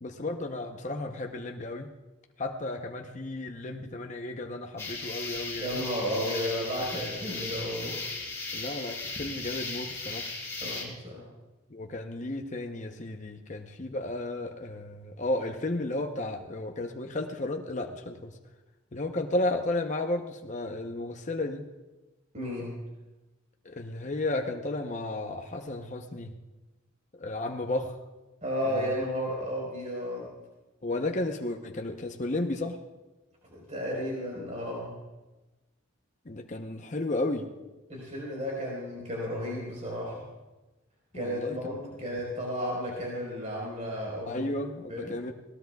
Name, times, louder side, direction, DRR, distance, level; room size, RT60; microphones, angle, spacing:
voice 1, 0.0-1.9 2.4-5.8 8.5-10.3 11.7-18.3 18.9-21.6 23.6-26.3 27.2-28.0 28.6-28.9 30.8-32.8 36.3-37.5 41.1-41.6 42.1-42.2 44.3-45.3, left 2 dB, 35° left, 3 dB, 0.8 m, -33 dB
sound 1, 4.8-10.8, left 3 dB, 15° left, 3.3 m, -36 dB
voice 2, 5.6-8.0 10.6-11.3 22.3-22.8 28.4-30.3 33.5-35.0 37.9-40.2 41.1-44.4 44.9-45.2, equal, 35° right, -3 dB, 4.3 m, -33 dB
20.5 x 18.0 x 2.3 m, 1.1 s
head